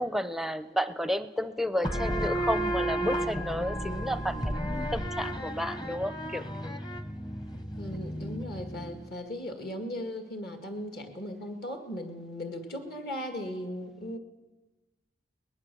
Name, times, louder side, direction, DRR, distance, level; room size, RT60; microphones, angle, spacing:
voice 1, 0.0-6.8, equal, ahead, 12 dB, 0.6 m, -32 dB
sound 1, 1.8-9.1, equal, 20° left, 1.1 m, -33 dB
voice 2, 7.8-14.2, equal, 50° left, 5 dB, 2.0 m, -37 dB
22.5 x 20.0 x 6.9 m, 1.1 s
head